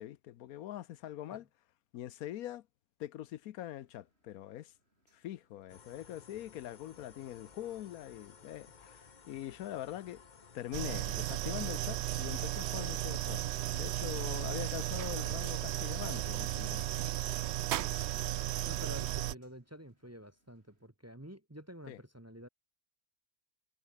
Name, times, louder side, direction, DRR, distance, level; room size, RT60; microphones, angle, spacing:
voice 1, 0.0-1.5 1.9-2.6 3.0-4.7 5.1-10.2 10.5-13.5 13.7-16.9 21.9-22.0, left 12 dB, 80° left, 1.2 m, -43 dB
sound 1, 3.8-20.9, right 1 dB, 45° right, 8.3 m, -79 dB
sound 2, 5.7-13.0, left 5 dB, 35° left, 1.1 m, -58 dB
sound 3, 10.7-19.3, right 13 dB, 65° right, 0.7 m, -35 dB
voice 2, 18.6-22.5, equal, 10° right, 1.1 m, -49 dB
omnidirectional pair, 1.5 m